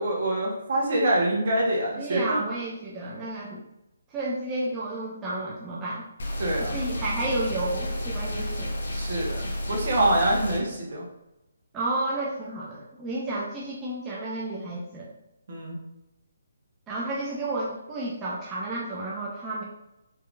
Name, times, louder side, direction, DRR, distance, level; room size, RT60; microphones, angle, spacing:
voice 1, 0.0-2.4 6.4-6.8 8.9-11.0 15.5-15.8, right 1 dB, 55° right, -2 dB, 1.4 m, -25 dB
voice 2, 2.0-3.7 4.1-6.0 6.6-8.7 11.7-15.1 16.9-19.6, right 2 dB, 15° right, -6 dB, 0.6 m, -31 dB
sound 1, 6.2-10.6, left 1 dB, 65° left, 1.0 m, -31 dB
4.4 x 3.6 x 2.5 m, 0.90 s
figure-of-eight pair, 150°, 0 cm